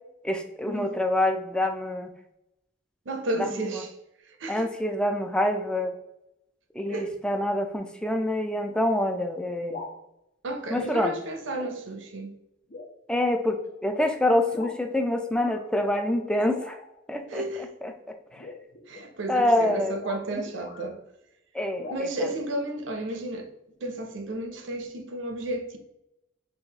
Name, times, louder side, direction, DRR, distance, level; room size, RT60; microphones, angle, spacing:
voice 1, 0.2-2.1 3.4-3.8 4.5-5.9 6.7-9.8 10.7-11.2 13.1-16.8 17.1-17.4 17.8-17.9 18.3-18.5 19.3-20.0 20.3-20.4 21.5-22.3, left 1 dB, 5° left, 0.3 m, -26 dB
voice 2, 3.1-3.9 4.3-4.7 6.9-7.2 10.4-12.4 17.3-17.7 18.9-21.0 21.9-23.5 23.8-25.8, right 1 dB, 75° right, 0.6 m, -32 dB
sound 1, 9.7-10.0 10.9-11.2 11.5-11.8 12.2-12.3 12.7-13.0 13.6-13.8 14.5-14.8 15.3-15.6 16.5-17.0 18.3-20.9 21.8-22.0, left 3 dB, 55° left, 0.6 m, -43 dB
5.5 x 2.6 x 2.8 m
head